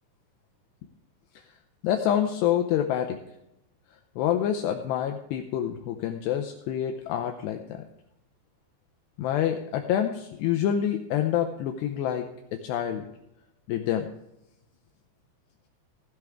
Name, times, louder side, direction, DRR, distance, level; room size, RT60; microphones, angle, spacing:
voice 1, 1.8-3.2 4.2-7.6 9.2-12.3 12.5-13.0 13.7-14.1, left 10 dB, 75° left, 4 dB, 2.7 m, -27 dB
16.5 x 12.0 x 3.6 m, 0.85 s
omnidirectional pair, 5.4 m